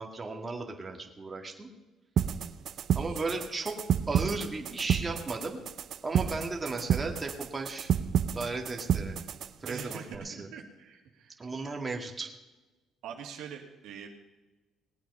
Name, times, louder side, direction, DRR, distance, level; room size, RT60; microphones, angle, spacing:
voice 1, 0.0-1.7 2.9-3.7 4.1-5.6 6.0-7.9 8.3-9.2 9.6-10.5 11.4-12.3, right 3 dB, 25° right, 2 dB, 2.0 m, -35 dB
sound 1, 2.2-10.1, right 8 dB, 60° right, 0.7 m, -30 dB
voice 2, 3.0-3.4 9.7-11.3 11.6-11.8 13.0-14.1, right 7 dB, 80° right, 2 dB, 2.2 m, -44 dB
19.5 x 8.6 x 5.5 m, 1.1 s
cardioid pair, 95°, 0 cm